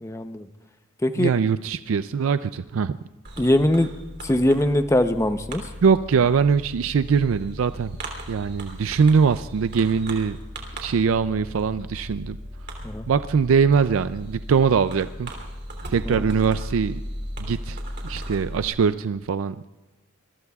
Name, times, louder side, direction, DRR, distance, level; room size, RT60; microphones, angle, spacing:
voice 1, 0.0-0.5 1.0-1.3 3.4-3.9 4.2-5.6 12.8-13.1 16.1-16.2, left 1 dB, 15° left, 9 dB, 0.7 m, -21 dB
voice 2, 1.2-3.0 5.8-8.0 8.3-10.4 10.8-12.4 13.1-15.3 15.9-17.0 17.4-19.7, right 6 dB, 85° right, 12 dB, 0.4 m, -22 dB
Fireworks, 3.2-18.7, equal, 55° right, 3.1 m, -37 dB
26.0 x 22.0 x 2.4 m, 1.1 s
head